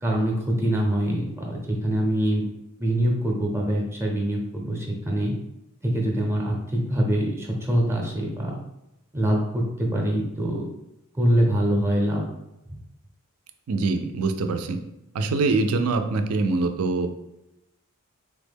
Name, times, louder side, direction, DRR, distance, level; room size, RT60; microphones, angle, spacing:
voice 1, 0.0-2.4 2.8-5.3 5.8-8.6 9.1-10.7 11.1-12.2, right 1 dB, 10° right, -1 dB, 0.5 m, -24 dB
voice 2, 13.7-14.8 15.1-17.1, right 3 dB, 75° right, 7 dB, 0.4 m, -24 dB
3.4 x 2.1 x 3.4 m, 0.90 s
head